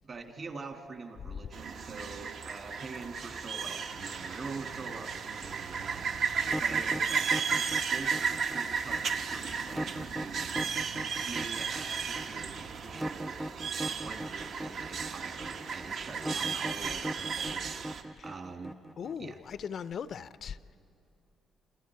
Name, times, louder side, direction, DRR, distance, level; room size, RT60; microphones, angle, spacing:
voice 1, 0.0-10.6 11.2-13.4 13.9-18.7 19.2-19.4, right 4 dB, 45° right, 4 dB, 2.0 m, -45 dB
sound 1, 1.5-18.0, right 6 dB, 65° right, 1.1 m, -34 dB
sound 2, 6.4-19.3, right 1 dB, 10° right, 0.5 m, -39 dB
voice 2, 19.0-20.8, left 7 dB, 60° left, 15 dB, 0.5 m, -39 dB
27.0 x 26.0 x 4.7 m, 2.6 s
cardioid pair, 90°, 0 cm